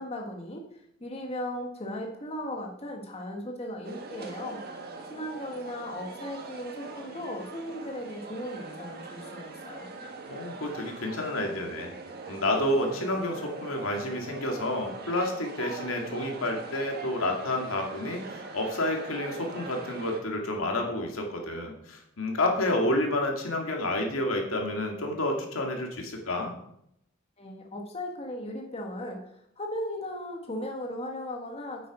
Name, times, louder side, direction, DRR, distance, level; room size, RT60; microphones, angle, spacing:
voice 1, 0.0-9.9 27.4-29.2 29.6-31.9, left 1 dB, 30° left, 1 dB, 1.4 m, -37 dB
sound 1, 3.8-20.2, right 3 dB, 50° right, 1.5 m, -42 dB
voice 2, 10.3-11.9 12.3-26.5, left 1 dB, 85° left, 2 dB, 2.3 m, -29 dB
9.4 x 8.1 x 5.0 m, 0.74 s
head